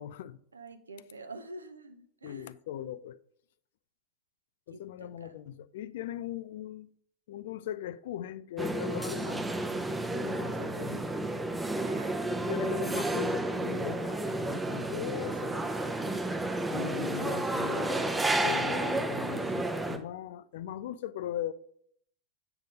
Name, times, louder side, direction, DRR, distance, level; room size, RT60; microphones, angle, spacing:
voice 1, 0.0-0.4 2.2-3.2 4.7-6.9 7.3-9.5 10.1-11.1 12.3-15.7 16.7-21.5, left 11 dB, 55° left, 0.4 m, -39 dB
voice 2, 0.5-2.5 4.7-5.3 11.8-12.1, right 2 dB, 75° right, 0.8 m, -47 dB
sound 1, 8.6-20.0, right 2 dB, 10° right, 0.7 m, -31 dB
8.8 x 3.5 x 5.3 m
figure-of-eight pair, 90°, 0 cm